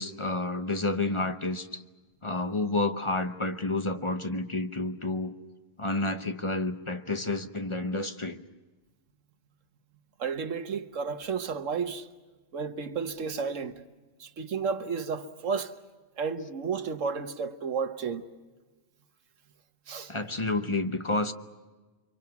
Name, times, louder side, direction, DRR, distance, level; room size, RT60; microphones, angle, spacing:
voice 1, 0.0-1.8 2.2-5.3 5.8-8.4 20.1-21.3, left 2 dB, 25° left, 0.9 m, -30 dB
voice 2, 10.2-12.1 12.5-13.8 14.2-15.7 16.2-18.2 19.9-20.1, right 5 dB, 85° right, 1.5 m, -32 dB
30.0 x 24.5 x 6.0 m
omnidirectional pair, 1.3 m